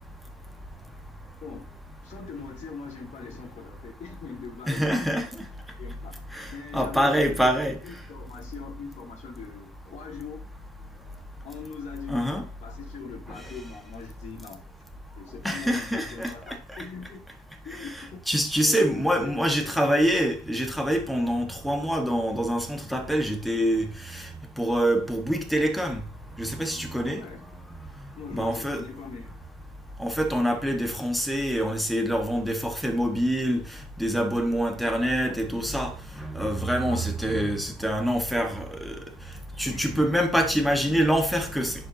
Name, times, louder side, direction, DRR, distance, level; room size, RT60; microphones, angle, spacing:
voice 1, 2.0-5.1 5.8-6.1 6.5-7.5 7.8-10.4 11.4-12.3 12.6-14.6 15.2-17.2 17.6-18.2 18.6-19.8 27.0-27.4 28.2-29.4 34.8-35.4 36.7-37.1 39.6-40.1, left 5 dB, 45° left, 3.3 m, -41 dB
voice 2, 4.7-5.3 6.3-6.5 6.7-7.8 12.1-12.4 15.4-16.3 17.8-17.9 18.3-24.2 24.6-26.0 26.4-27.2 28.3-28.8 30.0-33.6 34.0-38.9 39.6-41.7, equal, ahead, 1.4 m, -25 dB
11.0 x 4.6 x 2.8 m
cardioid pair, 110°, 17 cm